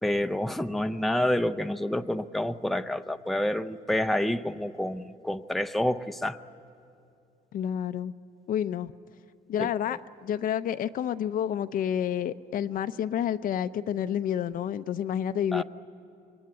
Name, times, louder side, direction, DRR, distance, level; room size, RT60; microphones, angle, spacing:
voice 1, 0.0-6.4 9.6-10.0 15.5-15.6, left 1 dB, ahead, 8 dB, 0.6 m, -28 dB
voice 2, 7.5-8.1 8.5-8.9 9.5-15.6, left 9 dB, 55° left, 12 dB, 0.6 m, -29 dB
26.5 x 21.5 x 9.6 m, 2.5 s
cardioid pair, 110°, 17 cm